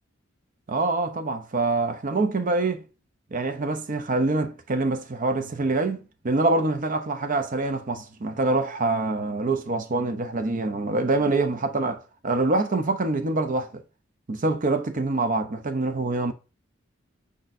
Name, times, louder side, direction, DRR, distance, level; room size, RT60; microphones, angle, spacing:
voice 1, 0.7-2.8 3.3-13.8 14.3-16.3, right 2 dB, 40° right, 0.6 m, -25 dB
5.0 x 4.1 x 2.5 m
head